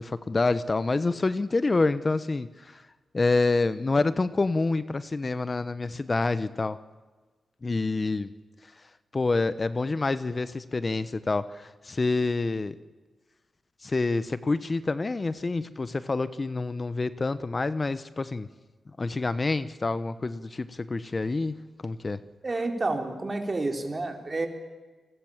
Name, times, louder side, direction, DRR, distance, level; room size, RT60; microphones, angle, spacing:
voice 1, 0.0-2.8 3.1-6.8 7.6-8.3 9.1-12.7 13.8-18.5 19.0-21.5 21.8-22.2, left 3 dB, 40° left, 14 dB, 1.1 m, -27 dB
voice 2, 22.4-24.5, right 2 dB, 40° right, 4 dB, 4.6 m, -29 dB
29.0 x 19.5 x 7.5 m, 1.3 s
cardioid pair, 50°, 0 cm